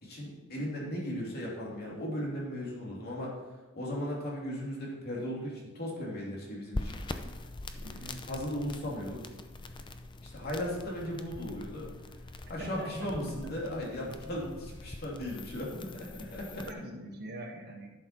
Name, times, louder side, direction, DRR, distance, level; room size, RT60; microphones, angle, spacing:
voice 1, 0.0-3.4 3.7-7.0 7.8-7.9 8.3-9.2 10.2-11.9 12.5-16.7, left 1 dB, 50° left, -4 dB, 2.8 m, -37 dB
sound 1, 6.7-16.7, left 2 dB, 25° left, 0.6 m, -43 dB
voice 2, 7.8-8.2 12.6-14.2 16.5-17.9, right 1 dB, 50° right, 1 dB, 1.4 m, -43 dB
11.5 x 6.6 x 4.5 m, 1.2 s
head